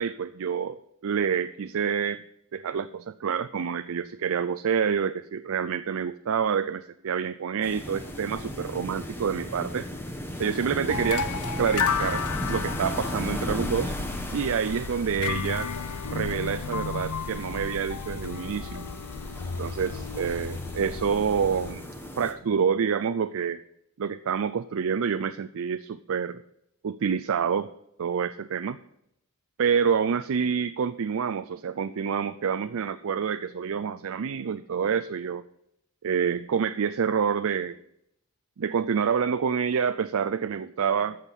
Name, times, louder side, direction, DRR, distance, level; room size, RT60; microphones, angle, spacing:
voice 1, 0.0-2.2 2.5-9.9 10.4-11.3 11.6-12.2 12.5-13.9 14.3-15.7 16.1-18.9 19.6-21.9 22.2-23.6 24.0-26.4 26.8-27.7 28.0-28.8 29.6-35.4 36.0-37.8 38.6-41.2, right 6 dB, 65° right, 11 dB, 0.4 m, -27 dB
sound 1, 7.6-22.3, left 1 dB, 10° left, 1.3 m, -37 dB
sound 2, 10.9-21.7, left 5 dB, 85° left, 0.6 m, -33 dB
14.0 x 6.6 x 5.3 m, 0.77 s
head